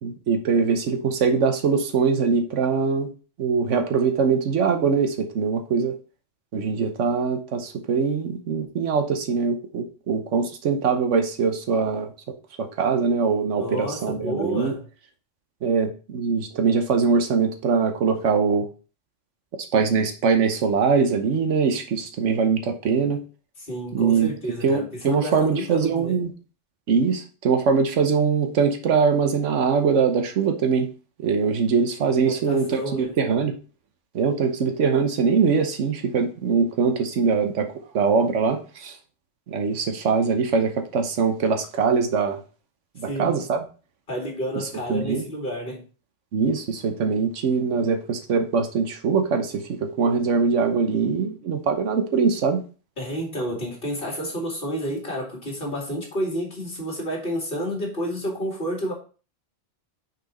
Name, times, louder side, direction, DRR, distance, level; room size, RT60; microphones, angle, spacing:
voice 1, 0.0-3.1 3.4-5.9 6.5-12.1 12.6-14.7 15.6-18.7 19.7-23.2 23.9-24.3 24.6-26.3 26.9-30.9 31.2-33.6 34.1-37.7 37.9-39.0 39.5-42.4 43.0-43.6 44.9-45.2 46.3-52.6, right 5 dB, 90° right, 1.2 m, -22 dB
voice 2, 13.6-14.8 23.6-26.2 32.3-33.2 43.0-43.4 44.1-45.8 53.0-58.9, equal, 50° left, 2.8 m, -30 dB
6.5 x 4.5 x 4.1 m
omnidirectional pair, 1.2 m